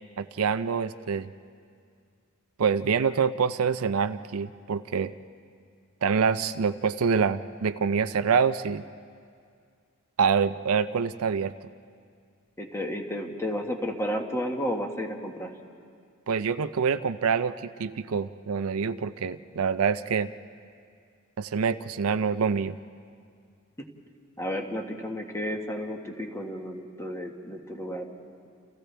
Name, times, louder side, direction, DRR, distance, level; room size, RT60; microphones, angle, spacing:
voice 1, 0.2-1.3 2.6-5.1 6.0-8.8 10.2-11.5 16.3-20.3 21.4-22.7, right 6 dB, 70° right, 11 dB, 0.5 m, -26 dB
voice 2, 12.6-15.5 24.4-28.2, equal, 10° left, 2 dB, 1.5 m, -32 dB
29.5 x 29.5 x 3.4 m, 2.2 s
head